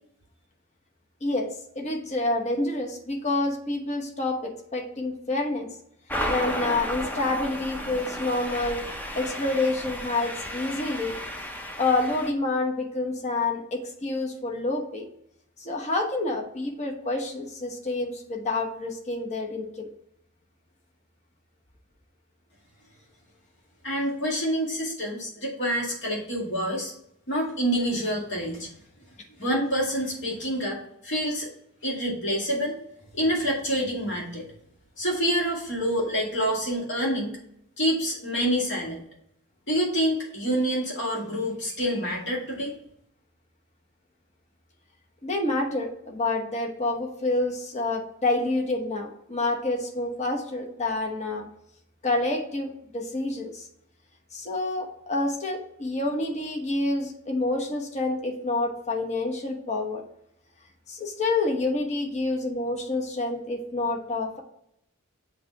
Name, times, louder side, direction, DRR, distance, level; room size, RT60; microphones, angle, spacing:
voice 1, 1.8-5.7 6.3-8.8 9.1-11.1 11.8-15.1 15.6-19.9 45.2-51.5 52.0-53.6 54.3-60.0 60.9-64.4, left 2 dB, 30° left, 2 dB, 0.9 m, -28 dB
sound 1, 6.1-12.3, equal, 10° left, 0.6 m, -33 dB
voice 2, 23.8-26.9 27.3-28.7 29.4-31.5 31.8-32.7 33.1-34.4 35.0-37.3 37.8-39.0 39.7-42.7, equal, 55° left, -2 dB, 2.1 m, -27 dB
7.4 x 2.8 x 4.6 m, 0.73 s
head